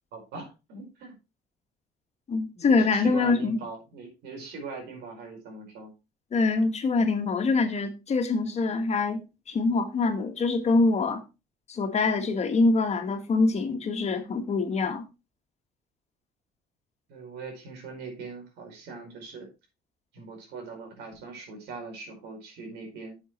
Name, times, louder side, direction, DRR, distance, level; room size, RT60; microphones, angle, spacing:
voice 1, 0.1-1.1 2.5-5.9 17.1-19.5 20.1-23.2, right 4 dB, 85° right, 4.7 m, -41 dB
voice 2, 2.3-3.6 6.3-11.2 11.7-15.0, left 3 dB, 40° left, 1.7 m, -24 dB
11.0 x 7.3 x 3.1 m
cardioid pair, 110°, 17 cm